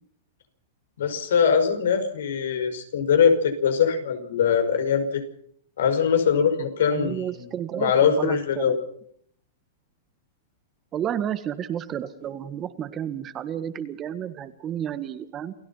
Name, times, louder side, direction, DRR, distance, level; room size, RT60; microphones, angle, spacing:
voice 1, 1.0-5.2 5.8-7.5 7.8-8.8, left 7 dB, 85° left, 6 dB, 5.5 m, -22 dB
voice 2, 6.9-8.8 10.9-15.5, right 9 dB, 25° right, 11 dB, 1.7 m, -31 dB
28.5 x 16.5 x 5.7 m, 0.63 s
supercardioid pair, 145°, 0 cm